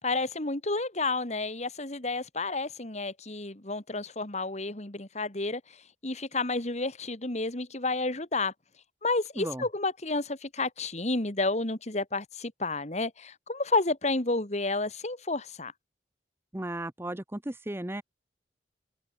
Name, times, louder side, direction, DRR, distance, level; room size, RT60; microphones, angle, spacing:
voice 1, 0.0-5.6 6.0-8.5 9.0-15.7, left 3 dB, 40° left, 2.4 m, -30 dB
voice 2, 16.5-18.0, right 1 dB, 15° right, 0.8 m, -35 dB
head